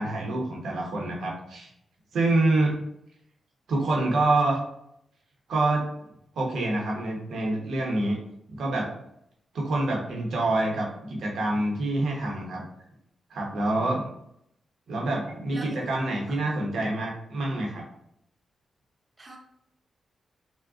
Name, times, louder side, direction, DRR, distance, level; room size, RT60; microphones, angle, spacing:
voice 1, 0.0-1.7 2.1-2.8 3.7-4.6 5.5-5.8 6.4-8.2 8.5-8.9 9.5-12.7 13.3-14.1 14.9-17.8, right 2 dB, 80° right, -1 dB, 0.8 m, -26 dB
voice 2, 15.5-15.9 16.3-16.4 19.2-19.4, right 1 dB, 25° right, 1 dB, 0.4 m, -40 dB
3.6 x 2.1 x 2.4 m, 0.75 s
cardioid pair, 90°, 0 cm